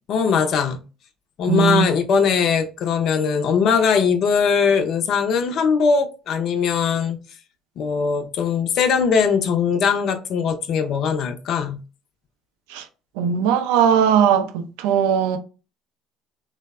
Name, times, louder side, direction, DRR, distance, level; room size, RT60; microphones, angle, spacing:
voice 1, 0.1-0.8 1.4-7.2 7.8-11.8, left 6 dB, 60° left, 0.5 m, -20 dB
voice 2, 1.5-1.9 12.7-12.9 13.2-15.4, right 8 dB, 75° right, 0.4 m, -19 dB
3.2 x 2.0 x 2.3 m
hypercardioid pair, 60°, 0 cm